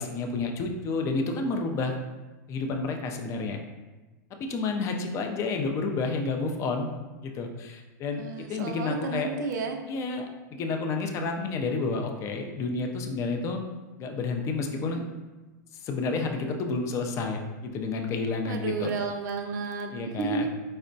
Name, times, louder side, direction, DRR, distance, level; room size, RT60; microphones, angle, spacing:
voice 1, 0.0-1.9 2.5-3.6 4.4-6.9 7.2-8.2 8.5-9.3 9.9-13.6 14.0-15.0 15.8-18.9 19.9-20.5, left 3 dB, 30° left, 4 dB, 0.4 m, -30 dB
voice 2, 8.1-9.8 18.5-20.5, right 5 dB, 75° right, 4 dB, 0.4 m, -32 dB
4.3 x 2.1 x 2.5 m, 1.2 s
hypercardioid pair, 120°, 10 cm